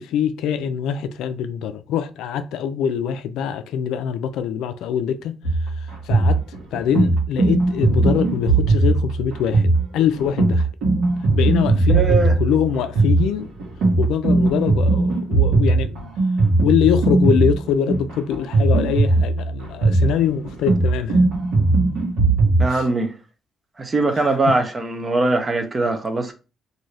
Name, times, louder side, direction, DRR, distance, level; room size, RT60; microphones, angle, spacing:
voice 1, 0.0-5.4 6.1-6.4 6.7-9.6 9.9-10.7 11.3-13.5 14.0-16.1 16.6-21.2 22.7-22.8, left 8 dB, 90° left, 0.3 m, -23 dB
sound 1, 5.4-22.7, right 3 dB, 80° right, 1.3 m, -18 dB
voice 2, 11.9-12.3 22.6-23.1 23.8-26.3, right 2 dB, 30° right, 0.7 m, -21 dB
2.6 x 2.6 x 3.2 m
cardioid pair, 90°, 0 cm